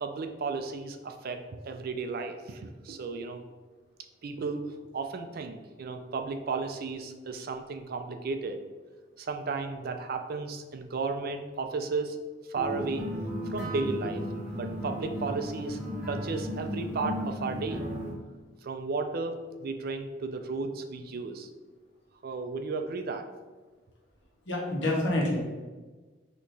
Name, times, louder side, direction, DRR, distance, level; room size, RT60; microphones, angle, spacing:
voice 1, 0.0-3.4 4.2-8.6 9.2-12.2 12.5-13.1 13.5-14.2 14.5-15.8 16.1-17.8 18.6-21.5 22.2-23.3, right 4 dB, 50° right, 7 dB, 0.4 m, -34 dB
sound 1, 12.5-18.1, equal, 5° right, 1.2 m, -35 dB
voice 2, 24.5-25.4, left 1 dB, 70° left, -3 dB, 1.3 m, -27 dB
4.3 x 3.0 x 3.9 m, 1.3 s
head